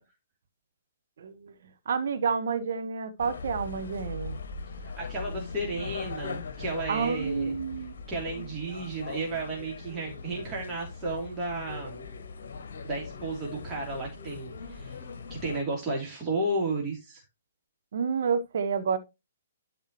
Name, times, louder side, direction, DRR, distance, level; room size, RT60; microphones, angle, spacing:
voice 1, 1.2-1.5 1.9-4.4 6.9-7.9 17.9-19.0, right 6 dB, 50° right, 1.2 m, -29 dB
sound 1, 3.2-15.6, left 4 dB, 50° left, 1.5 m, -40 dB
voice 2, 4.8-7.5 8.1-12.0 12.8-15.0 15.3-17.2, right 2 dB, 20° right, 3.0 m, -33 dB
12.0 x 5.0 x 3.0 m
figure-of-eight pair, 125°, 0 cm